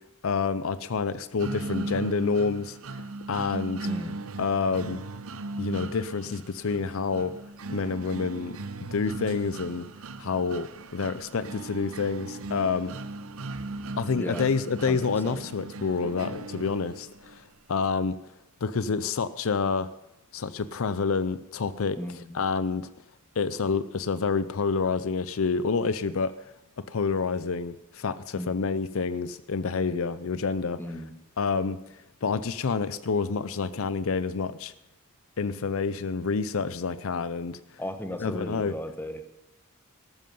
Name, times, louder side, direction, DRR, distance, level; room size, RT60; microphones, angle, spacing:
voice 1, 0.2-3.9 4.4-5.0 5.6-7.3 7.7-8.6 8.9-9.9 10.2-12.9 14.0-17.4 17.7-18.2 18.6-19.9 20.3-22.0 22.3-22.9 23.4-26.3 26.8-30.8 31.4-31.8 32.2-34.7 35.4-37.6 38.2-38.7, left 5 dB, 65° left, 15 dB, 0.6 m, -28 dB
sound 1, 1.4-17.4, right 2 dB, 65° right, 0.8 m, -38 dB
voice 2, 3.8-4.2 14.1-14.5 14.8-15.4 22.0-22.3 28.3-28.5 30.8-31.1 37.8-39.2, left 1 dB, 10° left, 8 dB, 1.2 m, -36 dB
13.0 x 13.0 x 5.4 m, 0.90 s
head